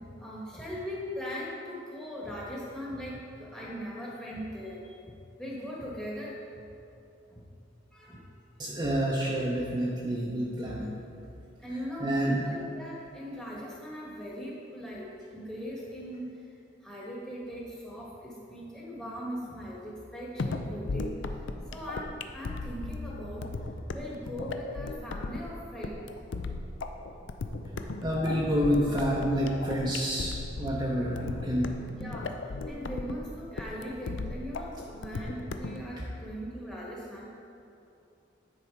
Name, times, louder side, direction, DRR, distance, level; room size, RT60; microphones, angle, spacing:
voice 1, 0.0-6.6 7.3-7.5 7.9-8.3 11.6-16.4 16.8-21.4 21.7-23.5 23.9-26.0 26.5-26.6 27.1-27.3 27.7-27.9 28.2-28.4 31.2-31.3 31.9-32.3 32.7-37.4, equal, 5° left, -5 dB, 1.3 m, -40 dB
voice 2, 8.6-10.9 12.0-12.5 28.0-31.9, equal, 20° right, -5 dB, 0.7 m, -28 dB
sound 1, 20.4-35.8, left 3 dB, 75° left, 0.5 m, -36 dB
10.0 x 4.2 x 4.5 m, 2.7 s
head